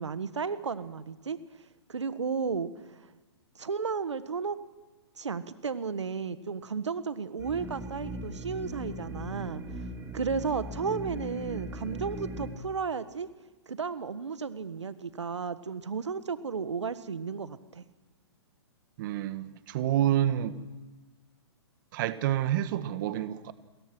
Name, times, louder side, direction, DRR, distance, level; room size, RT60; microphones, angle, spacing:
voice 1, 0.0-1.4 1.9-3.0 3.6-4.6 5.2-9.6 10.1-13.3 13.7-17.8, right 5 dB, 90° right, 1.5 m, -33 dB
sound 1, 7.4-12.5, right 1 dB, 15° right, 4.1 m, -39 dB
voice 2, 19.0-20.6 21.9-23.5, right 11 dB, 45° right, 1.5 m, -28 dB
28.0 x 22.0 x 6.2 m
hypercardioid pair, 135°, 15 cm